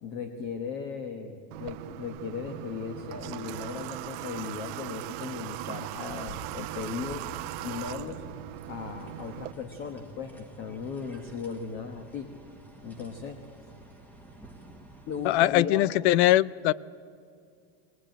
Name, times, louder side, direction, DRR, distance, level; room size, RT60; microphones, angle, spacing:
voice 1, 0.0-7.3 7.6-8.2 8.7-12.3 12.8-13.4 15.1-15.9, left 5 dB, 35° left, 7 dB, 1.3 m, -37 dB
Water / Water tap faucet, 1.5-9.5, right 15 dB, 45° right, 0.8 m, -39 dB
sound 1, 2.6-15.6, right 1 dB, 5° left, 1.3 m, -50 dB
voice 2, 15.2-16.7, left 15 dB, 70° left, 23 dB, 0.6 m, -22 dB
22.0 x 18.0 x 9.1 m, 2.3 s
supercardioid pair, 175°, 34 cm